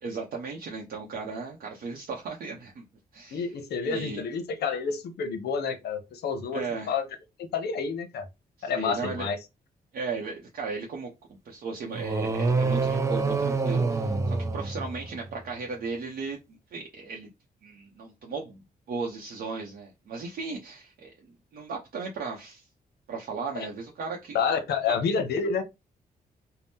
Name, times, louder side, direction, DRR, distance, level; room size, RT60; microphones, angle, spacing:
voice 1, 0.0-2.8 3.1-3.5 3.8-4.2 6.5-6.9 8.6-9.3 9.9-17.3 17.6-18.6 18.9-22.7 23.1-24.5 24.9-25.0, right 4 dB, 70° right, 0.6 m, -36 dB
voice 2, 3.3-6.6 6.9-7.0 7.5-8.3 8.6-9.4 24.3-25.6, left 5 dB, 85° left, 0.6 m, -29 dB
sound 1, 11.9-15.3, right 4 dB, 20° right, 0.4 m, -26 dB
2.7 x 2.0 x 3.4 m
cardioid pair, 120°, 16 cm